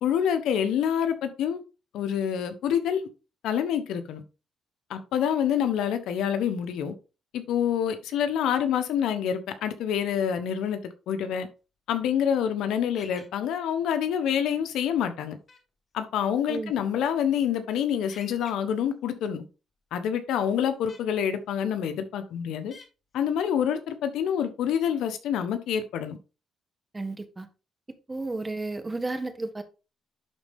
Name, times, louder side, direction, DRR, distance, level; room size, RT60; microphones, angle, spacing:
voice 1, 0.0-1.6 1.9-3.1 3.4-4.2 4.9-6.9 7.3-10.8 11.1-11.5 11.9-15.4 15.9-19.4 19.9-22.7 23.1-26.2, left 8 dB, 85° left, 1.1 m, -27 dB
sound 1, 12.9-13.3 15.5-15.6 18.1-18.5 20.9-21.0 22.7-22.9, left 4 dB, 45° left, 2.4 m, -46 dB
voice 2, 26.9-27.5 28.1-29.6, right 2 dB, 20° right, 1.4 m, -32 dB
11.0 x 4.2 x 3.6 m
cardioid pair, 90°, 0 cm